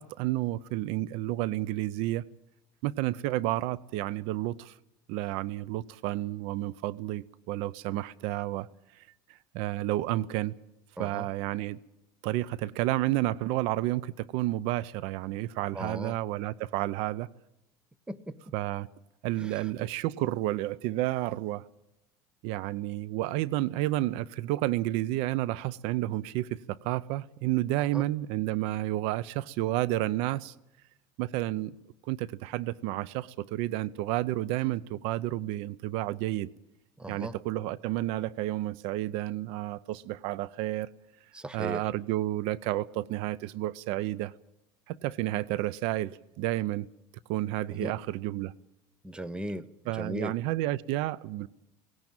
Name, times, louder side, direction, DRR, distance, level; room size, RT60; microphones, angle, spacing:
voice 1, 0.0-2.2 2.8-4.7 5.1-8.7 9.5-10.6 11.0-11.8 12.2-17.3 18.5-18.9 19.2-21.6 22.4-30.5 31.2-31.8 32.1-36.5 37.1-40.9 41.5-44.3 44.9-46.1 46.4-46.9 47.3-48.5 49.9-51.5, right 15 dB, 70° right, 0.7 m, -31 dB
voice 2, 11.0-11.3 15.7-16.1 18.1-18.4 19.3-19.7 27.8-28.1 37.0-37.4 41.3-41.9 47.7-47.9 49.0-50.3, right 1 dB, 10° right, 0.9 m, -38 dB
18.0 x 17.0 x 8.9 m
supercardioid pair, 125°, 10 cm